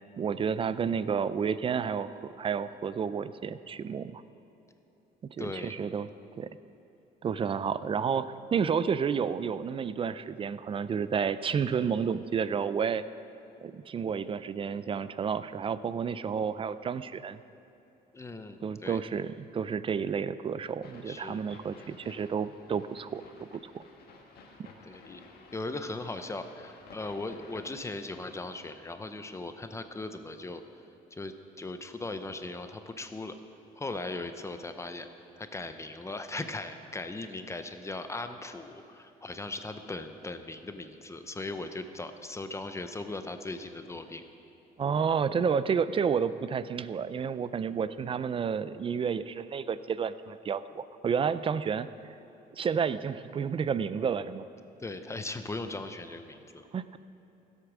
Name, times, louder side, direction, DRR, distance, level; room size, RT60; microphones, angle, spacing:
voice 1, 0.2-4.2 5.4-6.1 6.4-6.5 7.2-13.0 13.6-17.4 18.6-23.2 23.5-23.8 44.8-51.9 52.5-54.5 56.7-57.0, right 6 dB, 35° right, 14 dB, 0.4 m, -30 dB
voice 2, 5.4-5.7 18.1-19.0 21.1-21.4 24.8-25.2 25.5-30.6 31.1-33.3 33.8-35.1 35.4-44.2 54.8-56.6, left 2 dB, 15° left, 8 dB, 0.7 m, -38 dB
sound 1, 20.8-27.7, left 4 dB, 70° left, 1.7 m, -54 dB
16.0 x 8.2 x 6.1 m, 2.9 s
cardioid pair, 125°, 16 cm